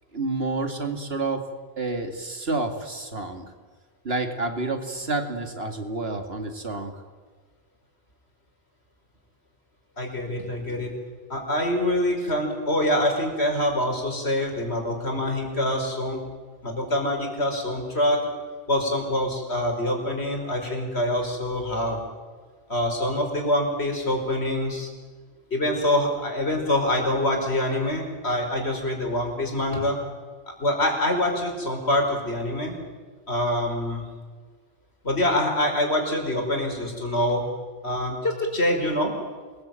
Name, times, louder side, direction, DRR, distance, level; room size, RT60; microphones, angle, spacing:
voice 1, 0.1-1.5 1.8-3.5 4.0-6.9, right 3 dB, 70° right, 6 dB, 2.7 m, -29 dB
voice 2, 10.0-10.9 11.3-16.2 16.6-18.2 18.7-22.0 22.7-24.9 25.5-30.0 30.6-32.8 33.3-34.0 35.0-37.4 37.8-39.1, left 1 dB, 80° left, 2 dB, 5.5 m, -25 dB
27.0 x 21.0 x 9.2 m, 1.5 s
omnidirectional pair, 1.1 m